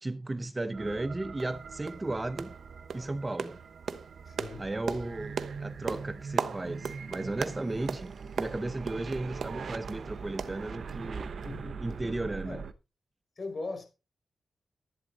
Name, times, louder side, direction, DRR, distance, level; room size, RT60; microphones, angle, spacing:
voice 1, 0.0-2.5 2.9-3.6 4.6-8.1 8.4-11.3 11.8-12.6, right 2 dB, 20° right, 0.6 m, -35 dB
sound 1, 0.7-12.7, right 5 dB, 60° right, 0.9 m, -42 dB
sound 2, 0.9-1.0 1.4-1.6 1.8-2.1 2.4-2.6 2.9-10.0 10.4-11.2 11.4-11.5 11.9-12.0, right 6 dB, 80° right, 1.1 m, -38 dB
voice 2, 4.3-4.7 11.4-11.8 12.4-12.6 13.4-13.9, left 3 dB, 40° left, 4.9 m, -39 dB
12.0 x 11.5 x 4.0 m
wide cardioid pair, 160°, 0 cm